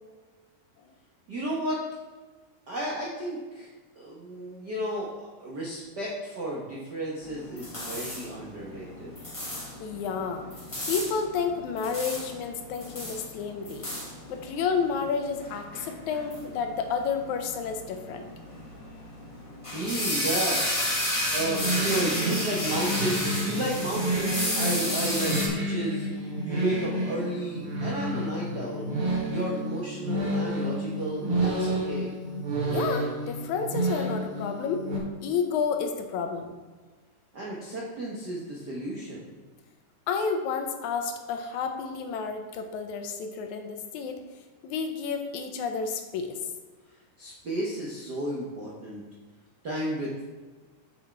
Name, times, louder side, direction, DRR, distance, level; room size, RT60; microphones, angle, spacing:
voice 1, 1.3-1.8 2.7-3.7 3.9-9.1 19.7-20.6 21.3-26.1 26.4-28.9 29.3-32.1 37.3-39.2 47.2-49.0 49.6-50.2, right 1 dB, 75° right, -4 dB, 0.9 m, -33 dB
sound 1, 7.2-25.5, left 1 dB, 20° left, 0.8 m, -33 dB
voice 2, 9.8-10.5 10.9-13.9 14.3-18.2 32.7-34.9 35.2-36.5 40.1-44.2 44.6-46.4, left 5 dB, 75° left, 5 dB, 1.9 m, -30 dB
sound 2, 21.3-35.0, right 1 dB, 50° right, 2.0 m, -30 dB
6.9 x 6.4 x 4.6 m, 1.4 s
omnidirectional pair, 3.7 m